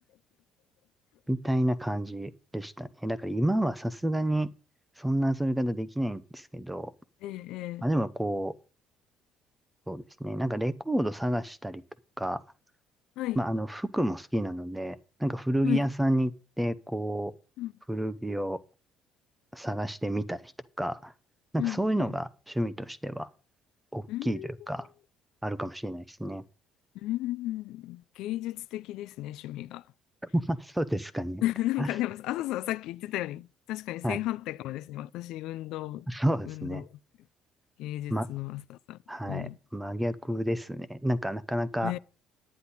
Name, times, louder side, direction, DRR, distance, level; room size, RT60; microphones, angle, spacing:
voice 1, 1.3-4.5 5.0-6.9 7.8-8.5 9.9-11.8 12.2-12.4 13.4-16.3 16.6-17.3 17.9-18.6 19.5-20.5 20.8-21.1 21.5-23.3 23.9-24.9 25.4-26.4 30.3-31.4 31.8-31.9 34.0-34.2 36.1-36.8 38.1-38.3 39.1-41.9, right 1 dB, 5° right, 0.7 m, -30 dB
voice 2, 7.2-7.9 13.2-13.4 15.6-15.9 17.6-17.7 21.6-22.1 24.1-24.5 27.0-29.8 31.4-36.1 36.5-37.0 37.8-39.0 39.2-39.6 41.8-42.0, left 15 dB, 75° left, 0.4 m, -34 dB
10.0 x 9.8 x 4.1 m
cardioid pair, 160°, 0 cm